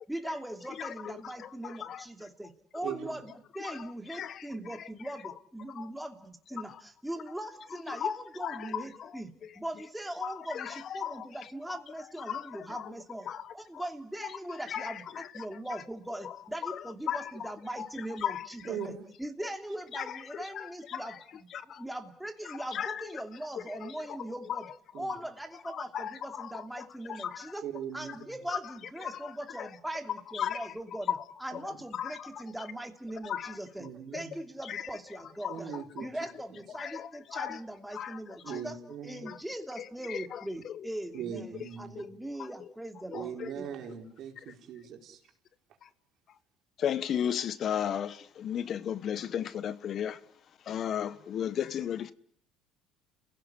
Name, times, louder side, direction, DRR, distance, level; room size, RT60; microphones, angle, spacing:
voice 1, 0.1-13.3 13.5-21.5 21.8-24.7 25.0-27.7 27.9-33.9 34.1-35.7 36.0-38.8 39.0-43.9, right 1 dB, 5° right, 2.8 m, -40 dB
voice 2, 0.8-1.1 1.4-2.0 3.6-4.5 5.8-5.9 7.9-8.8 10.2-11.2 12.2-12.9 13.3-13.5 14.7-15.3 16.2-16.3 16.6-16.8 17.1-17.3 17.8-17.9 18.2-18.5 19.9-20.0 20.3-21.2 21.5-21.8 22.4-23.1 23.8-24.2 24.5-24.6 25.6-27.5 28.5-28.6 29.0-29.3 29.6-29.7 30.3-30.7 31.1-31.2 31.9-32.4 33.2-33.6 34.1-34.2 34.7-34.8 35.4-35.8 36.8-37.6 37.9-38.2 38.5-38.6 39.2-39.4 39.8-40.8 43.1-43.5 45.8-45.9 46.8-50.2 50.7-52.1, left 9 dB, 50° left, 1.0 m, -35 dB
voice 3, 2.8-3.2 18.6-19.0 24.9-25.2 27.6-28.3 33.8-34.4 35.5-36.1 38.4-39.2 41.1-42.0 43.1-45.2, right 8 dB, 60° right, 4.8 m, -40 dB
30.0 x 16.5 x 9.9 m
supercardioid pair, 85°, 0 cm